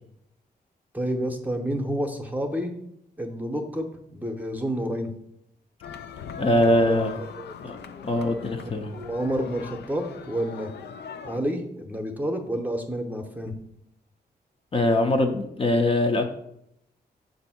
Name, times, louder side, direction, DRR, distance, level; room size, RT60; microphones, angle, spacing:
voice 1, 0.9-2.7 3.2-5.1 6.6-7.5 8.9-10.7 11.2-13.5, equal, 10° right, 4 dB, 0.7 m, -29 dB
sound 1, 5.8-11.4, left 7 dB, 90° left, 0.4 m, -40 dB
voice 2, 6.4-7.1 7.6-7.8 8.0-8.9 14.7-16.2, left 1 dB, 35° left, 3 dB, 0.6 m, -22 dB
6.6 x 2.6 x 5.6 m, 0.77 s
wide cardioid pair, 120°, 17 cm